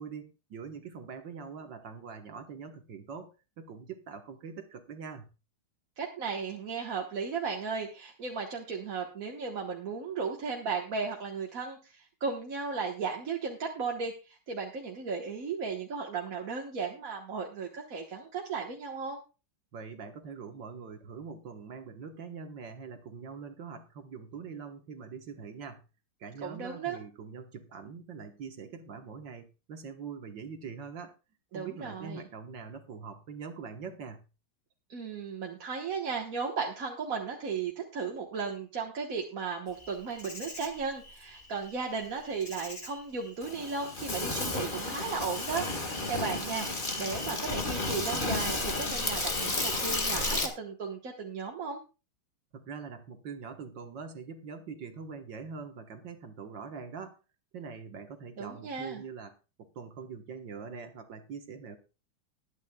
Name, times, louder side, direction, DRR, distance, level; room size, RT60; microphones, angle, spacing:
voice 1, 0.0-5.3 19.7-25.8 26.2-31.2 31.5-34.2 52.5-57.2 57.5-59.3 59.6-61.8, right 5 dB, 60° right, 6 dB, 1.9 m, -43 dB
voice 2, 6.0-19.2 26.4-27.0 31.5-32.2 34.9-51.8 58.4-59.0, right 5 dB, 45° right, 1 dB, 1.6 m, -35 dB
Insect, 39.8-50.5, left 2 dB, 25° left, 1.7 m, -33 dB
21.0 x 9.7 x 2.3 m, 0.31 s
omnidirectional pair, 2.3 m